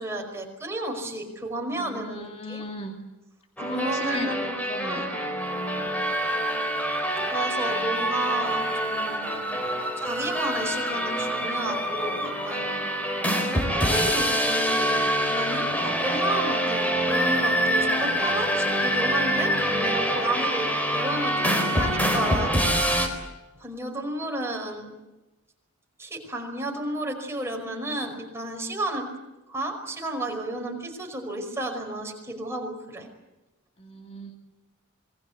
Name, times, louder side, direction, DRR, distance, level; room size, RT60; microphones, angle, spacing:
voice 1, 0.0-2.6 3.6-4.6 4.8-5.1 7.3-9.6 10.0-12.9 13.7-15.0 15.3-20.7 20.9-23.2 23.6-24.9 26.0-29.1 29.5-33.1, right 1 dB, 10° right, 1 dB, 5.3 m, -32 dB
voice 2, 1.7-3.0 3.6-4.3 4.7-6.0 7.7-8.0 33.8-34.3, left 1 dB, 30° left, 2 dB, 2.4 m, -37 dB
sound 1, 3.6-23.1, equal, 5° left, 4.2 m, -25 dB
26.5 x 21.0 x 8.2 m, 1.0 s
head